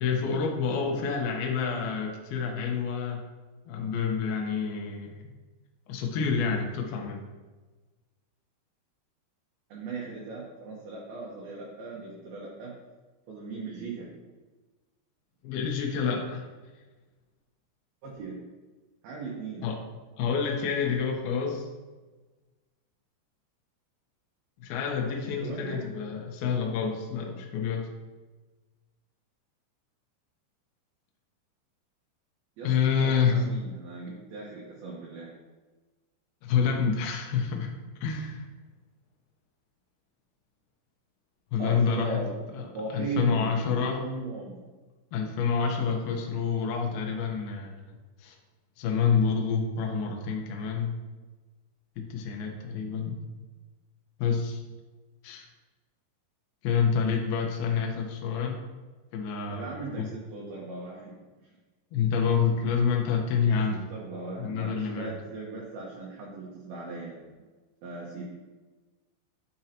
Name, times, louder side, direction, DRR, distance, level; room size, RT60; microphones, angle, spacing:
voice 1, 0.0-3.2 3.7-5.2 5.9-7.2 15.4-16.4 19.6-19.8 20.2-21.7 24.6-27.9 32.6-33.5 36.4-37.7 38.0-38.4 41.5-42.2 42.5-42.7 42.9-44.0 45.1-47.7 48.2-48.4 48.8-50.9 52.0-53.2 54.2-54.6 55.2-55.5 56.6-58.6 59.1-59.7 59.9-60.1 61.9-63.8 64.4-65.1, left 6 dB, 80° left, 1 dB, 2.2 m, -28 dB
voice 2, 0.7-1.1 9.7-12.7 13.3-14.1 18.0-18.4 19.0-19.7 25.2-25.9 32.6-32.7 33.0-35.3 41.6-42.3 42.7-44.6 59.5-61.6 63.7-67.3 67.8-68.2, right 3 dB, 70° right, -3 dB, 2.4 m, -38 dB
10.0 x 7.4 x 2.9 m, 1.3 s
omnidirectional pair, 5.7 m